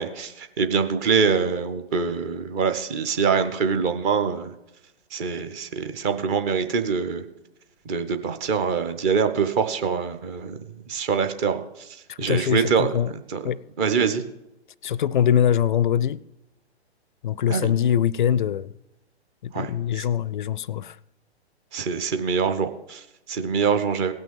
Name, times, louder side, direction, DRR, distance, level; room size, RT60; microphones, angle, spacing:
voice 1, 0.0-4.5 5.1-7.2 7.9-10.6 10.9-11.9 12.2-12.9 13.3-13.4 13.8-14.2 17.5-17.7 19.5-19.7 20.0-20.1 21.7-24.1, right 6 dB, 15° right, 0.4 m, -24 dB
voice 2, 12.1-13.1 13.4-13.6 14.8-16.2 17.2-18.7 19.4-21.0, left 9 dB, 45° left, 0.4 m, -23 dB
17.0 x 6.1 x 7.0 m
figure-of-eight pair, 120°, 34 cm